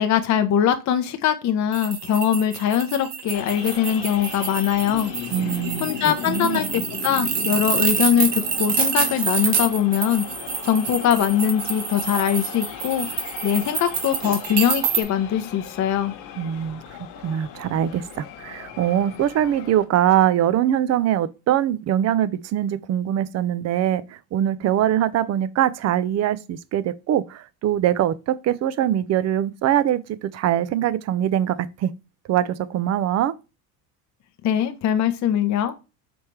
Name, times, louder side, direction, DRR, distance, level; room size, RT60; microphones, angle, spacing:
voice 1, 0.0-5.1 5.8-10.2 10.6-16.1 34.4-35.7, left 9 dB, 35° left, 0.7 m, -22 dB
sound 1, 1.7-15.0, right 6 dB, 55° right, 1.3 m, -27 dB
sound 2, 3.3-19.8, left 9 dB, 70° left, 1.2 m, -37 dB
voice 2, 5.3-6.7 16.4-17.0 17.2-31.9 32.3-33.3, right 11 dB, 35° right, 0.5 m, -23 dB
5.2 x 3.2 x 3.1 m
hypercardioid pair, 75°, 48 cm